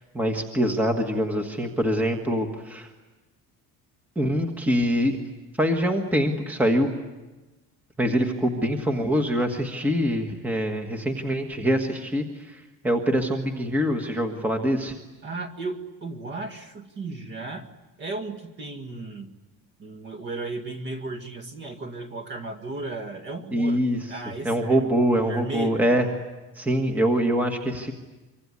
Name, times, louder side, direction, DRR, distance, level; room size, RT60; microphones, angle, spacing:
voice 1, 0.0-2.9 4.1-5.2 5.6-6.9 8.0-14.9 23.5-24.0 24.4-26.1 26.5-27.9, equal, 5° right, 4 dB, 1.5 m, -24 dB
voice 2, 15.2-17.7 18.0-19.3 19.8-23.8 24.1-24.8 25.3-25.9, right 3 dB, 30° right, 6 dB, 2.0 m, -35 dB
25.0 x 24.5 x 9.7 m, 1.2 s
cardioid pair, 180°, 38 cm